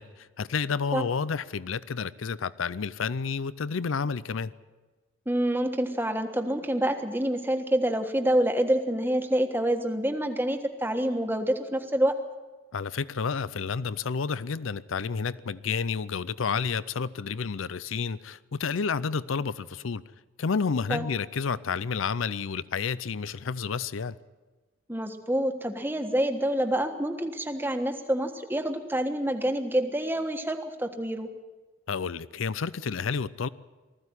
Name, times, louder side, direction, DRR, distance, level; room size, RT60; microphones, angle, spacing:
voice 1, 0.0-4.5 12.7-20.0 20.4-24.1 31.9-33.5, left 5 dB, 80° left, 0.5 m, -30 dB
voice 2, 5.2-12.2 20.9-21.1 24.9-31.3, right 1 dB, 10° right, 1.4 m, -27 dB
19.5 x 15.0 x 9.8 m
head